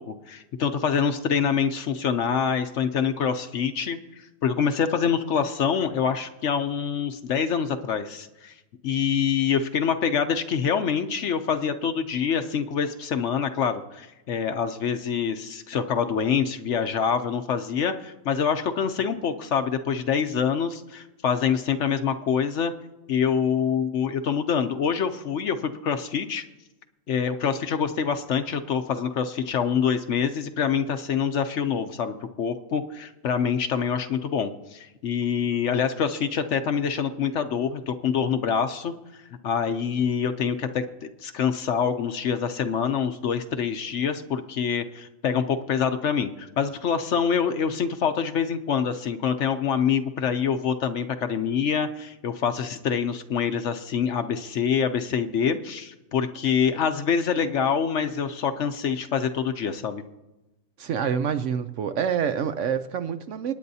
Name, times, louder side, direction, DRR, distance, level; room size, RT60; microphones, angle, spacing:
voice 1, 0.0-8.5 8.8-22.7 23.1-26.4 27.1-60.0, left 7 dB, 60° left, 0.9 m, -26 dB
voice 2, 60.8-63.5, right 7 dB, 65° right, 0.8 m, -27 dB
28.0 x 9.4 x 2.7 m
omnidirectional pair, 1.6 m